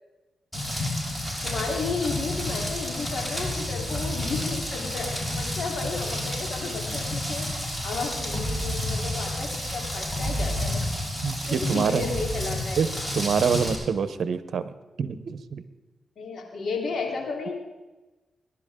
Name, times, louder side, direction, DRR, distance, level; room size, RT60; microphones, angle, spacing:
Rain, 0.5-13.8, left 1 dB, 15° left, 5.9 m, -30 dB
voice 1, 1.4-10.8 11.5-12.8 16.2-17.5, left 4 dB, 70° left, 0 dB, 3.6 m, -33 dB
voice 2, 11.2-12.1 12.8-12.9 13.2-14.6 15.0-15.6, right 6 dB, 75° right, 12 dB, 0.9 m, -25 dB
21.0 x 11.5 x 3.8 m, 1.1 s
cardioid pair, 60°, 0 cm